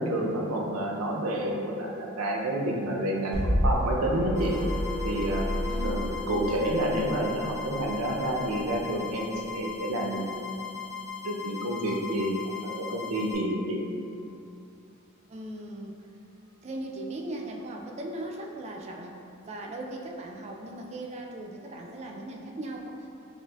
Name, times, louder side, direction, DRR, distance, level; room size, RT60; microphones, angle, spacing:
voice 1, 0.0-4.6 5.0-5.5 5.8-10.5 11.2-12.4 12.6-13.8, right 1 dB, 90° right, 0 dB, 0.5 m, -29 dB
sound 1, 3.3-9.5, equal, 40° left, 0.8 m, -30 dB
sound 2, 4.0-7.0, left 1 dB, 90° left, 1.0 m, -37 dB
sound 3, 4.3-13.3, left 8 dB, 60° left, 1.3 m, -39 dB
voice 2, 15.3-16.0 16.6-23.1, right 1 dB, 30° right, 1 dB, 0.3 m, -38 dB
5.5 x 2.4 x 2.3 m, 2.6 s
head